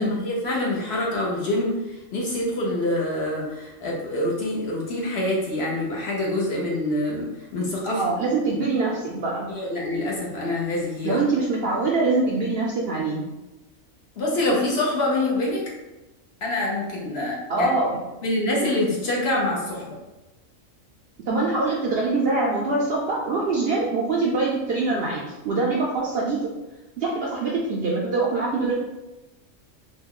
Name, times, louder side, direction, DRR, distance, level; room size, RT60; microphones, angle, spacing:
voice 1, 0.0-1.8 2.1-8.0 8.5-8.6 9.5-11.2 14.2-15.6 16.4-17.7 18.2-19.9, left 1 dB, 55° left, -3 dB, 0.9 m, -25 dB
voice 2, 7.9-9.5 11.0-13.2 17.5-18.0 21.3-26.4 27.0-28.7, right 3 dB, 65° right, -3 dB, 0.6 m, -24 dB
3.0 x 2.2 x 3.6 m, 1.0 s
omnidirectional pair, 1.4 m